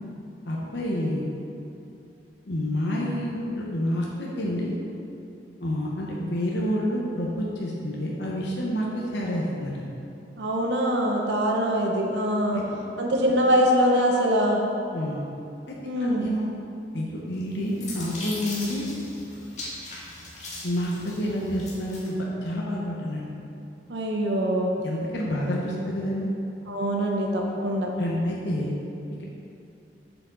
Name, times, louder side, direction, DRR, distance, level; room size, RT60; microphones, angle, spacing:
voice 1, 0.4-1.3 2.5-4.7 5.6-9.8 12.5-12.6 14.9-15.2 15.7-16.5 16.9-18.9 20.6-23.3 24.8-26.3 28.0-28.7, equal, 80° left, -4 dB, 1.0 m, -28 dB
voice 2, 10.4-12.6 13.0-14.6 15.8-16.3 23.9-24.7 26.7-27.9, equal, 80° right, 0 dB, 0.8 m, -23 dB
sound 1, 17.4-22.1, left 2 dB, 40° left, 1.6 m, -39 dB
7.8 x 7.1 x 3.9 m, 2.7 s
head